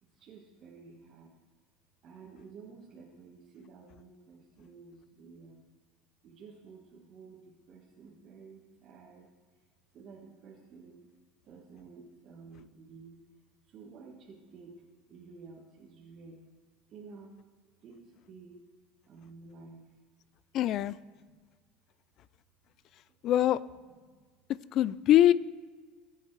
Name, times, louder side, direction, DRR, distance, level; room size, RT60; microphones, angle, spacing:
voice 1, 0.0-1.3 2.0-5.6 6.2-9.3 9.9-11.0 11.4-13.3 13.6-14.8 15.1-16.4 16.9-17.3 17.8-18.6 19.1-19.8 21.2-21.5 23.8-24.2 24.9-25.0, right 4 dB, 40° right, -3 dB, 1.6 m, -52 dB
voice 2, 20.5-21.0 23.2-23.6 24.7-25.3, left 12 dB, 45° left, 19 dB, 0.4 m, -23 dB
20.0 x 8.3 x 3.3 m, 1.5 s
supercardioid pair, 135°, 0 cm